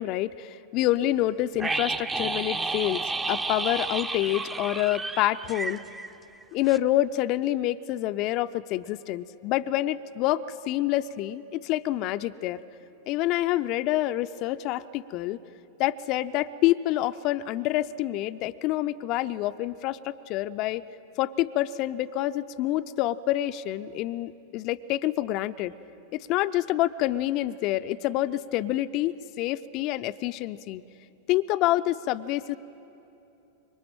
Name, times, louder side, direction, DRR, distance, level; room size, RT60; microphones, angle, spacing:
voice 1, 0.0-5.8 6.5-12.6 13.1-15.4 15.8-20.8 21.2-25.7 26.1-30.8 31.3-32.6, left 15 dB, 40° left, 11 dB, 0.6 m, -27 dB
sound 1, 1.6-6.4 6.7-6.8, right 3 dB, 15° right, 0.8 m, -31 dB
26.5 x 23.5 x 8.9 m, 2.9 s
figure-of-eight pair, 90°, 0 cm